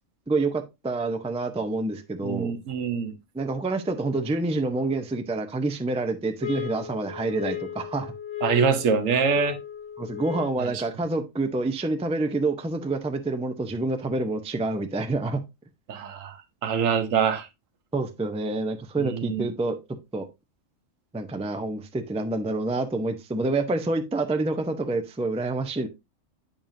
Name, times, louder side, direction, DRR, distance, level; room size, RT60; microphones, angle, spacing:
voice 1, 0.3-2.5 3.3-8.1 10.0-15.4 17.9-19.8 20.1-20.3 21.1-25.9, right 2 dB, 10° right, 0.3 m, -27 dB
voice 2, 2.2-3.2 8.4-9.6 10.6-10.8 15.9-17.5 19.0-19.5, right 6 dB, 80° right, 1.3 m, -25 dB
sound 1, 6.4-10.8, left 11 dB, 75° left, 1.4 m, -35 dB
8.9 x 5.3 x 2.6 m
omnidirectional pair, 1.3 m